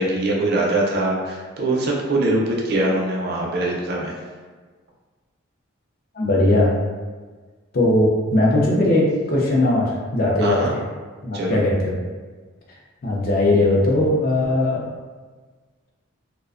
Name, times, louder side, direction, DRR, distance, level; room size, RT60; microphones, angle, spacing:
voice 1, 0.0-4.1 10.4-10.7 11.3-11.6, right 1 dB, 50° right, -2 dB, 0.4 m, -22 dB
voice 2, 6.2-6.7 7.7-10.8 11.2-12.0 13.0-14.9, left 1 dB, 45° left, -3 dB, 0.5 m, -19 dB
2.4 x 2.1 x 2.4 m, 1.4 s
head